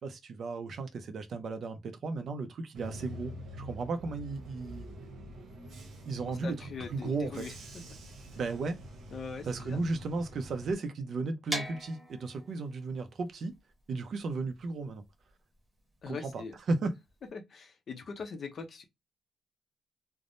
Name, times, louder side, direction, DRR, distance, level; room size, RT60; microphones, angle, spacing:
voice 1, 0.0-4.9 6.1-7.5 8.4-8.8 9.4-13.5 13.9-15.0 16.1-16.9, right 3 dB, 50° right, 0.5 m, -35 dB
Bus / Engine, 2.7-10.7, right 1 dB, 90° right, 0.8 m, -46 dB
voice 2, 6.4-7.8 9.1-9.8 16.0-16.6 17.3-18.8, left 5 dB, 40° left, 0.5 m, -41 dB
sound 1, 11.5-17.3, equal, 5° right, 1.1 m, -42 dB
3.3 x 2.0 x 2.5 m
wide cardioid pair, 175°, 0 cm